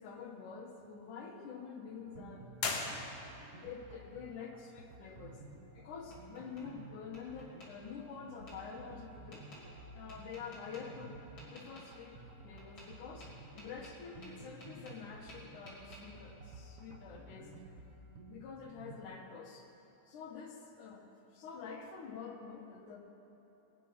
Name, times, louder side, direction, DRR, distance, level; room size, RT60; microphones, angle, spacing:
voice 1, 0.0-3.1 3.5-5.4 5.7-9.5 9.9-11.2 11.5-17.5 18.3-19.7 20.1-23.0, left 6 dB, 85° left, 2 dB, 3.0 m, -47 dB
sound 1, 2.1-19.0, right 2 dB, 55° right, 2.2 m, -54 dB
sound 2, 2.6-3.6, left 4 dB, 65° left, 2.5 m, -38 dB
Tap, 5.6-6.7 7.1-7.7 8.5-8.6 9.3-9.6 10.1-10.8 11.4-11.9 12.6-12.9 13.2-15.0 15.3-16.0, left 1 dB, 40° left, 4.0 m, -55 dB
21.5 x 10.0 x 5.9 m, 3.0 s
omnidirectional pair, 3.5 m